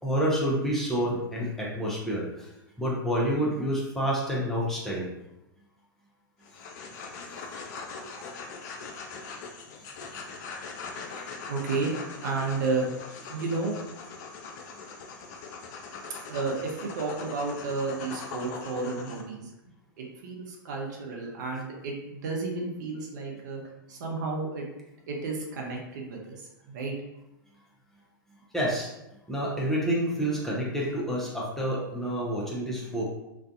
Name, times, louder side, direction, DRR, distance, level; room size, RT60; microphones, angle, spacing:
voice 1, 0.0-2.5 2.8-5.1 6.9-7.1 11.1-11.3 28.5-28.9 29.3-33.1, equal, 5° left, -6 dB, 0.6 m, -28 dB
sound 1, 6.4-19.2, left 4 dB, 50° left, 0.4 m, -41 dB
voice 2, 8.0-8.3 11.5-11.9 12.2-12.9 13.3-13.8 16.2-19.5 20.0-23.6 23.9-24.7 25.1-26.9, right 3 dB, 55° right, -1 dB, 0.6 m, -32 dB
2.4 x 2.2 x 2.6 m, 0.92 s
figure-of-eight pair, 100°, 11 cm